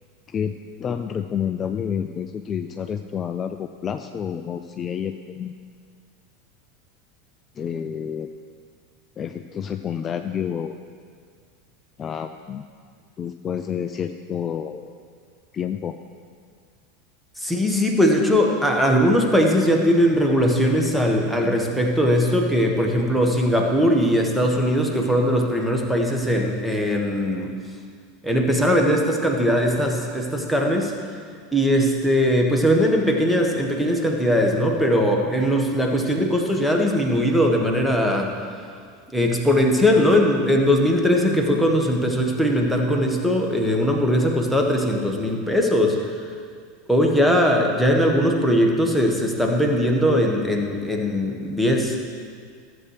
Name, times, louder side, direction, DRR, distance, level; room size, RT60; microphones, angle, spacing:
voice 1, 0.3-5.6 7.6-8.3 9.2-10.7 12.0-12.6 13.2-14.9 15.5-16.0, left 8 dB, 30° left, 7 dB, 0.4 m, -29 dB
voice 2, 17.4-27.5 28.2-30.9 31.5-38.3 39.1-46.3 46.9-52.1, equal, ahead, 1 dB, 1.3 m, -20 dB
14.5 x 7.9 x 3.2 m, 2.1 s
figure-of-eight pair, 80°, 0 cm